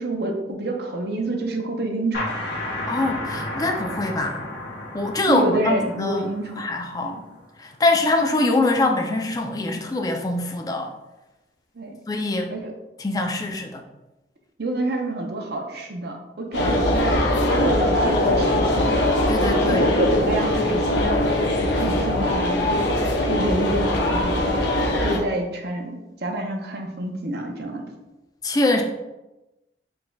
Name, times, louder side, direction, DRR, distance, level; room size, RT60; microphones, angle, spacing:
voice 1, 0.0-2.3 5.3-6.6 7.0-7.2 11.7-11.9 12.5-12.7 14.6-19.0 19.6-27.9, right 1 dB, 60° right, 2 dB, 0.6 m, -28 dB
sound 1, 2.1-7.6, left 1 dB, 65° left, 1.2 m, -33 dB
voice 2, 2.9-4.4 4.9-6.3 6.6-7.1 7.6-10.9 12.1-12.5 13.0-13.8 16.6-16.9 19.3-19.9 28.4-28.8, left 2 dB, 20° left, 3 dB, 0.4 m, -23 dB
sound 2, 16.5-25.2, left 1 dB, 80° left, 0.6 m, -21 dB
3.9 x 3.8 x 2.3 m, 1.0 s
head